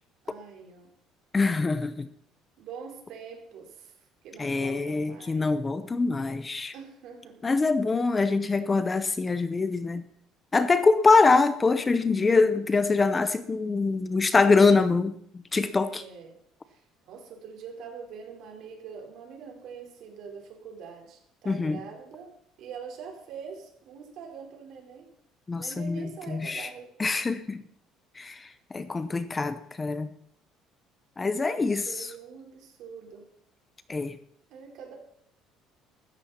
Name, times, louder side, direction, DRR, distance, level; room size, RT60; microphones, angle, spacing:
voice 1, 0.2-0.9 2.6-4.0 4.2-5.5 6.7-7.4 15.8-16.4 16.7-25.1 25.5-26.9 31.4-33.2 34.5-34.9, right 6 dB, 60° right, 1 dB, 4.5 m, -44 dB
voice 2, 1.3-2.1 4.4-6.7 7.4-10.0 10.5-15.1 15.5-16.0 21.5-21.8 25.5-26.7 27.0-27.6 28.2-30.1 31.2-32.1 33.9-34.2, left 4 dB, 15° left, 12 dB, 0.7 m, -24 dB
15.0 x 14.0 x 4.3 m, 0.67 s
cardioid pair, 155°, 0 cm